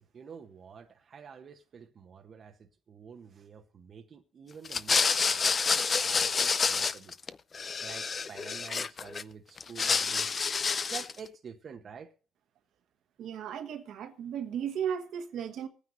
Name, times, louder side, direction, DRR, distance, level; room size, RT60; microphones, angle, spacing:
voice 1, 0.0-7.1 7.8-10.3 10.9-12.1, right 6 dB, 50° right, 1.0 m, -48 dB
sound 1, 4.7-7.3 7.5-9.2 9.6-11.2, left 5 dB, 40° left, 0.6 m, -28 dB
voice 2, 13.2-15.7, right 8 dB, 80° right, 1.4 m, -35 dB
25.0 x 9.5 x 2.7 m
cardioid pair, 90°, 0 cm